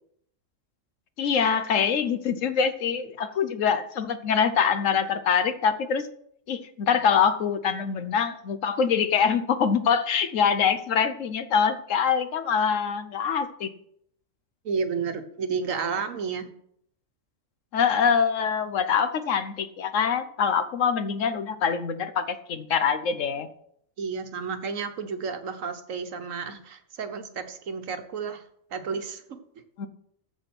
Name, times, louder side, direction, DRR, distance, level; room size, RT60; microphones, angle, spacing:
voice 1, 1.2-6.1 6.5-13.7 17.7-23.5 29.8-29.9, left 6 dB, 75° left, 12 dB, 1.2 m, -24 dB
voice 2, 14.6-16.5 24.0-28.4 28.7-29.4, right 5 dB, 75° right, 8 dB, 1.4 m, -31 dB
14.5 x 5.0 x 6.1 m, 0.71 s
omnidirectional pair, 1.4 m